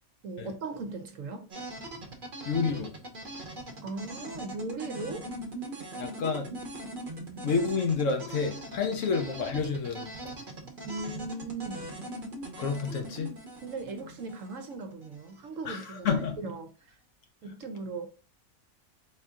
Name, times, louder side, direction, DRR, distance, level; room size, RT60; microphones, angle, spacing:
voice 1, 0.2-1.5 3.8-5.3 8.9-9.0 10.8-11.9 13.6-16.7 17.4-18.1, right 3 dB, 65° right, 1.0 m, -38 dB
sound 1, 1.5-15.4, right 1 dB, 40° right, 0.9 m, -41 dB
voice 2, 2.4-2.9 6.0-6.5 7.4-10.3 12.6-13.3 15.6-16.4, left 5 dB, 65° left, 1.0 m, -29 dB
4.3 x 2.7 x 3.5 m
omnidirectional pair, 1.6 m